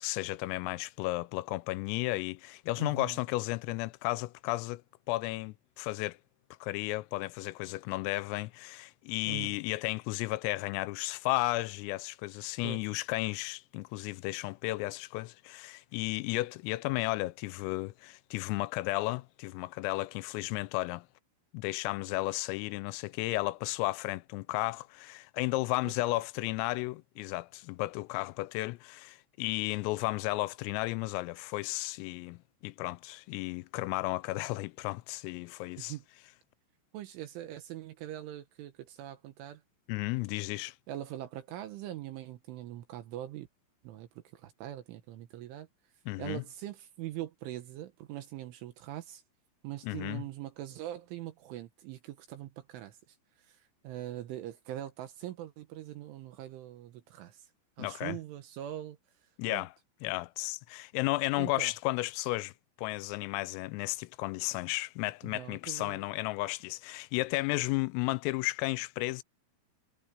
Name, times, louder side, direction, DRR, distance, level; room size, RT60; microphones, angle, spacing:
voice 1, 0.0-4.8 5.1-6.2 6.6-21.1 21.5-35.9 39.9-40.7 46.1-46.4 49.8-50.2 57.8-58.2 59.4-59.7 60.0-62.5 62.8-69.2, left 21 dB, 90° left, 3.3 m, -33 dB
voice 2, 2.8-3.2 9.3-9.6 12.6-12.9 25.8-25.9 35.8-36.0 36.9-39.6 40.9-43.5 43.8-45.7 46.2-49.2 49.6-53.0 53.4-57.5 57.8-59.0 59.5-59.7 61.4-61.7 65.2-66.0, right 13 dB, 75° right, 3.5 m, -42 dB
omnidirectional pair, 5.9 m